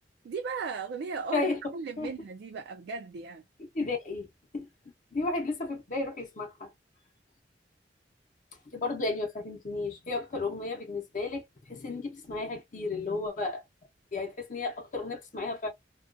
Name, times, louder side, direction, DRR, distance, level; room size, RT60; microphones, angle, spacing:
voice 1, 0.2-3.4, right 4 dB, 65° right, 0.3 m, -36 dB
voice 2, 3.7-4.3 4.5-4.7 5.1-6.7 8.7-13.6 14.1-15.7, left 3 dB, 45° left, 0.7 m, -33 dB
2.3 x 2.3 x 2.4 m
head